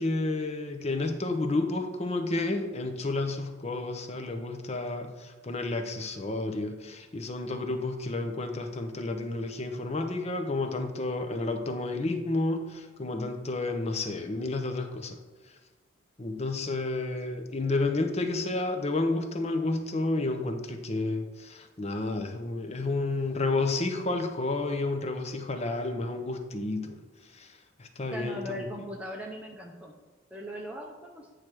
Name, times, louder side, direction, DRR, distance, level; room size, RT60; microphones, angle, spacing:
voice 1, 0.0-15.2 16.2-27.0 27.3-28.7, left 2 dB, 30° left, 6 dB, 0.7 m, -31 dB
voice 2, 28.1-29.9 30.3-31.3, equal, 5° right, -1 dB, 0.6 m, -39 dB
8.8 x 3.3 x 6.1 m, 1.2 s
head